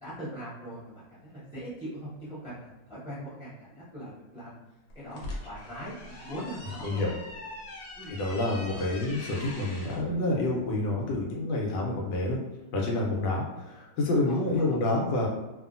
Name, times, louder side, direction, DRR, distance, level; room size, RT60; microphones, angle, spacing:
voice 1, 0.0-4.6 4.9-7.0 8.0-8.1 14.2-14.8, equal, 5° right, -12 dB, 0.6 m, -41 dB
sound 1, 4.9-10.0, left 1 dB, 70° left, 1.2 m, -42 dB
voice 2, 8.1-12.4 12.7-15.3, left 2 dB, 85° left, -2 dB, 1.3 m, -28 dB
2.7 x 2.5 x 2.4 m, 1.1 s
omnidirectional pair, 1.9 m